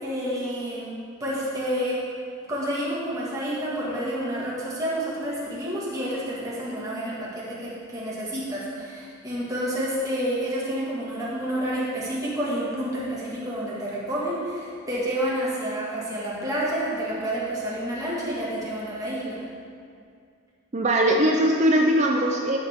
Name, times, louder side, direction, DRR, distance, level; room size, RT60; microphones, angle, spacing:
voice 1, 0.0-2.0 2.5-19.4, equal, 15° right, -7 dB, 1.8 m, -29 dB
voice 2, 20.7-22.6, right 1 dB, 35° right, 0 dB, 0.5 m, -20 dB
11.5 x 6.5 x 3.6 m, 2.3 s
head